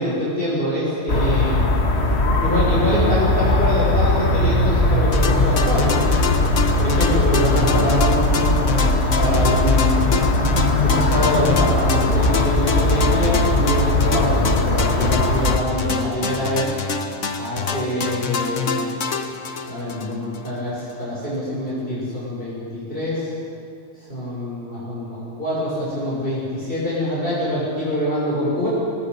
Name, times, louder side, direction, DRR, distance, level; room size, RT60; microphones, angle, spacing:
voice 1, 0.0-1.6 2.4-6.2 6.8-8.5 9.2-10.1 10.8-16.6 17.4-18.8 19.7-23.3 24.0-28.7, equal, 45° left, -7 dB, 7.1 m, -25 dB
sound 1, 1.1-15.6, left 2 dB, 60° left, 2.0 m, -19 dB
sound 2, 5.1-20.5, left 4 dB, 85° left, 1.6 m, -26 dB
24.5 x 22.5 x 5.5 m, 2.3 s
omnidirectional pair, 1.3 m